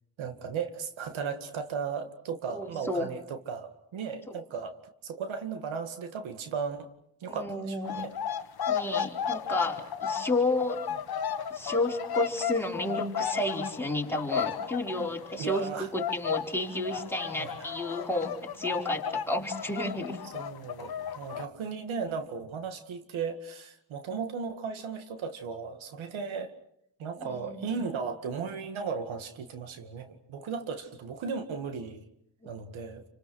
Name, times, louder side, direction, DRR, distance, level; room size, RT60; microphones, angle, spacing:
voice 1, 0.2-4.8 5.0-6.9 7.2-8.2 15.4-15.9 17.4-17.7 20.3-26.5 27.0-32.1 32.5-33.0, right 5 dB, 90° right, 7 dB, 2.1 m, -36 dB
voice 2, 2.5-3.0 4.3-4.4 7.3-8.0 8.7-10.8 11.5-20.2 27.2-27.7 32.4-32.5, left 2 dB, 5° left, -1 dB, 4.4 m, -31 dB
sound 1, 7.8-15.7 16.0-21.5, left 8 dB, 55° left, 1.2 m, -34 dB
29.0 x 25.5 x 6.4 m, 0.77 s
cardioid pair, 90°, 46 cm